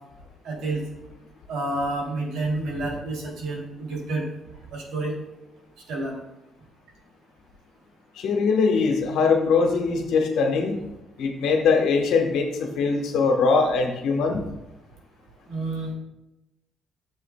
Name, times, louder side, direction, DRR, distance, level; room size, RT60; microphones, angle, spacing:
voice 1, 0.4-0.8 1.5-4.3 4.7-5.1 5.9-6.2 15.5-15.9, right 2 dB, 85° right, -1 dB, 2.6 m, -29 dB
voice 2, 8.2-10.8 11.2-14.4, left 4 dB, 85° left, 3 dB, 1.2 m, -22 dB
11.0 x 7.2 x 2.2 m, 0.92 s
cardioid pair, 90°, 0 cm